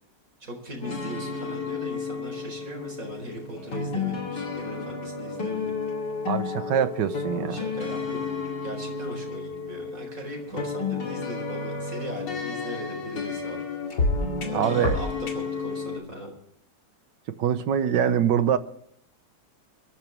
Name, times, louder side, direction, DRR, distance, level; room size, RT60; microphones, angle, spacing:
voice 1, 0.4-5.7 7.5-13.6 14.5-16.3, right 1 dB, 50° right, 2 dB, 4.9 m, -39 dB
sound 1, 0.8-16.0, left 4 dB, 80° left, 3.0 m, -31 dB
voice 2, 6.3-7.6 14.5-15.0 17.3-18.6, right 9 dB, 80° right, 12 dB, 1.7 m, -24 dB
22.0 x 13.5 x 3.5 m, 0.69 s
omnidirectional pair, 1.9 m